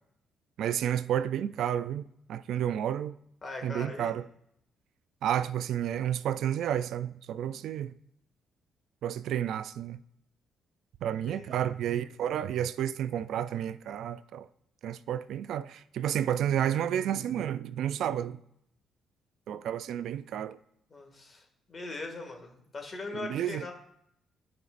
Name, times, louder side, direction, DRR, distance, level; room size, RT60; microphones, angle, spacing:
voice 1, 0.6-2.0 2.3-3.2 3.6-4.2 5.2-7.9 9.0-10.0 11.0-14.5 14.8-18.4 19.5-20.6 23.1-23.6, right 10 dB, 75° right, 0.3 m, -31 dB
voice 2, 3.4-4.1 11.3-11.7 20.9-23.7, left 3 dB, 35° left, 2.0 m, -41 dB
14.0 x 5.3 x 2.5 m
cardioid pair, 90°, 0 cm